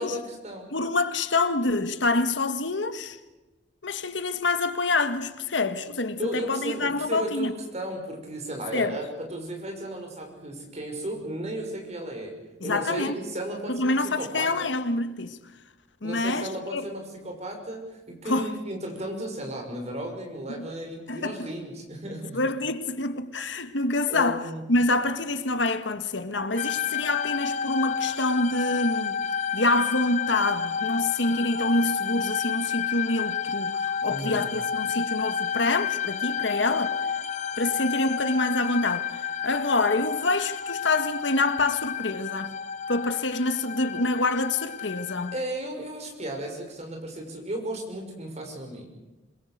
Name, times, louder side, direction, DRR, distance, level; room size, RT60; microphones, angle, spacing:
voice 1, 0.0-0.7 6.2-12.3 12.6-14.7 16.0-22.4 24.1-24.6 34.1-34.5 45.3-48.9, right 1 dB, 40° right, 6.1 m, -35 dB
voice 2, 0.7-3.2 3.8-7.5 8.7-9.0 12.6-13.2 13.7-15.4 16.0-16.8 18.3-18.5 20.6-20.7 21.1-21.4 22.3-24.4 24.7-29.2 29.5-37.0 37.6-42.6 42.9-45.3, left 2 dB, 85° left, 1.6 m, -26 dB
sound 1, 26.6-45.4, left 7 dB, 40° left, 1.1 m, -30 dB
27.0 x 22.0 x 6.8 m
head